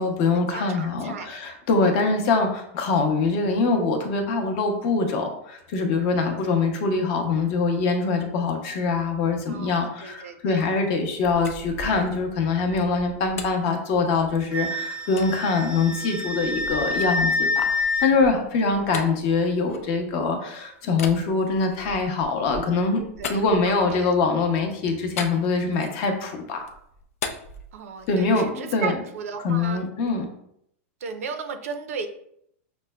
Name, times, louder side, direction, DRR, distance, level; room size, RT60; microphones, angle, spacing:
voice 1, 0.0-23.0 23.3-26.6 28.1-28.9 29.4-30.3, left 4 dB, 40° left, 4 dB, 0.6 m, -24 dB
voice 2, 0.5-1.4 9.5-10.7 23.2-24.1 27.7-29.9 31.0-32.1, right 6 dB, 85° right, 7 dB, 0.5 m, -35 dB
sound 1, 11.2-14.5 15.2-15.3 15.9-20.3 20.9-24.1 25.2-26.3 26.6-28.4, left 4 dB, 90° left, 0.5 m, -39 dB
Wind instrument woodwind instrument, 14.5-18.1, left 3 dB, 10° right, 0.5 m, -26 dB
5.8 x 2.1 x 2.2 m, 0.71 s
supercardioid pair, 160°, 8 cm